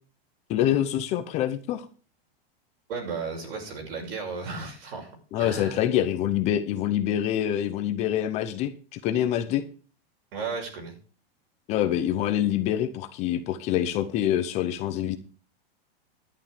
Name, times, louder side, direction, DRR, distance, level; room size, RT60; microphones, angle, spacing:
voice 1, 0.5-1.8 5.3-9.6 11.7-15.2, left 11 dB, 20° left, 9 dB, 0.7 m, -26 dB
voice 2, 2.9-5.1 5.4-5.8 10.3-11.0, right 5 dB, 65° right, 2 dB, 6.7 m, -34 dB
11.0 x 10.5 x 5.0 m, 0.39 s
supercardioid pair, 165°, 31 cm